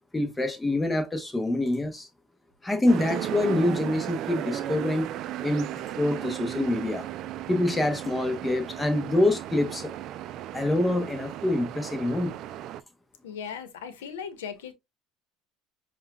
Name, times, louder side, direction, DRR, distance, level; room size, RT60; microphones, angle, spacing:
voice 1, 0.1-2.1 2.6-5.1 5.4-7.0 7.5-9.9 10.5-12.3, left 1 dB, 15° left, 0.8 m, -26 dB
sound 1, 2.9-12.8, right 12 dB, 60° right, 0.3 m, -35 dB
voice 2, 13.2-14.7, left 7 dB, 90° left, 0.9 m, -37 dB
6.9 x 2.3 x 2.2 m
supercardioid pair, 85°, 0 cm